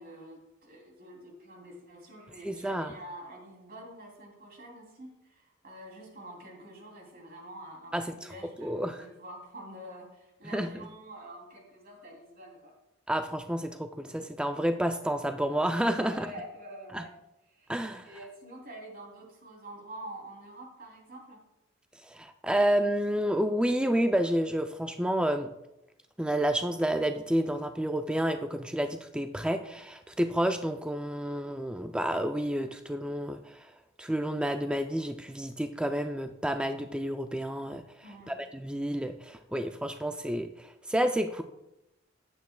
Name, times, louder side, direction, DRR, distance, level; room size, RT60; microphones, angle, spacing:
voice 1, 0.0-12.7 16.0-17.1 17.5-21.4 38.0-38.4, right 1 dB, 50° right, 0 dB, 2.8 m, -47 dB
voice 2, 2.4-2.9 7.9-8.0 8.6-9.0 10.5-10.9 13.1-16.3 16.9-17.0 17.7-18.1 22.0-25.5 26.2-33.7 34.0-37.8 38.3-41.4, right 1 dB, 5° right, 7 dB, 0.3 m, -30 dB
14.0 x 9.4 x 2.2 m, 0.90 s
head